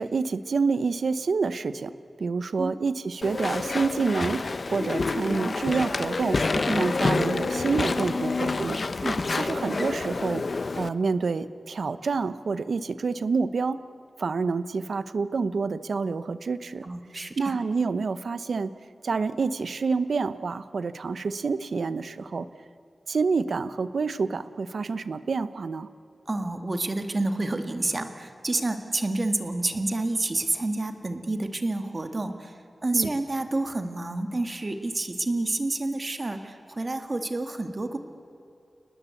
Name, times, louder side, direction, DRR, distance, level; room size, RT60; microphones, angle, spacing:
voice 1, 0.0-1.9 2.2-8.8 9.3-10.4 10.8-13.8 14.2-16.9 17.4-18.7 19.0-22.5 23.1-25.9 32.9-33.1, right 4 dB, 80° right, 14 dB, 0.9 m, -28 dB
Walk footsteps / Chatter / Squeak, 3.2-10.9, left 3 dB, 50° left, 0.8 m, -28 dB
voice 2, 5.2-5.6 6.6-6.9 9.0-9.2 16.8-17.6 26.3-38.0, right 2 dB, 35° right, 7 dB, 1.9 m, -29 dB
30.0 x 19.5 x 8.4 m, 2.8 s
wide cardioid pair, 105°, 0 cm